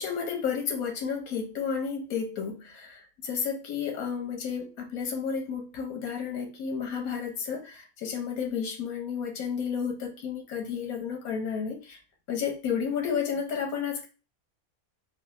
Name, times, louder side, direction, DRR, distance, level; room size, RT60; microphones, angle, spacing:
voice 1, 0.0-12.0 12.3-14.1, left 6 dB, 85° left, 2 dB, 1.2 m, -32 dB
3.2 x 2.2 x 2.4 m, 0.33 s
omnidirectional pair, 1.5 m